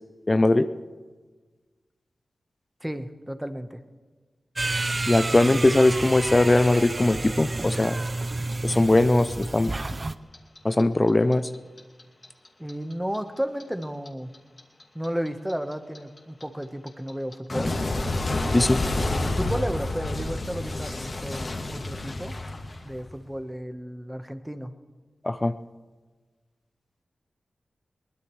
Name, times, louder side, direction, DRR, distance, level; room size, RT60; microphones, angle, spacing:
voice 1, 0.3-0.7 5.1-8.0 8.6-10.1 10.6-11.5 18.5-18.8 25.2-25.5, left 2 dB, 30° left, 11 dB, 0.6 m, -20 dB
voice 2, 2.8-3.8 12.6-14.3 14.9-17.8 18.9-22.3 22.8-24.7, equal, 5° right, 8 dB, 1.2 m, -33 dB
sound 1, 4.6-10.1, right 2 dB, 35° right, 0.6 m, -30 dB
Clock, 7.8-10.8 11.1-14.1 14.3-23.2, left 2 dB, 55° left, 2.4 m, -29 dB
22.5 x 20.0 x 3.2 m, 1.4 s
cardioid pair, 60°, 0 cm